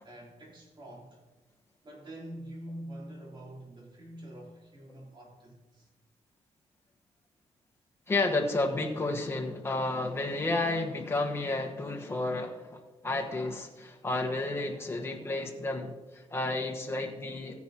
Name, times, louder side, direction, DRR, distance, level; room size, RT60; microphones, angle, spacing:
voice 1, 0.0-1.2 1.8-5.9, right 1 dB, 40° right, -4 dB, 3.8 m, -45 dB
voice 2, 8.1-17.6, left 2 dB, 20° left, 1 dB, 1.4 m, -31 dB
16.5 x 10.5 x 3.0 m, 1.2 s
cardioid pair, 125°, 12 cm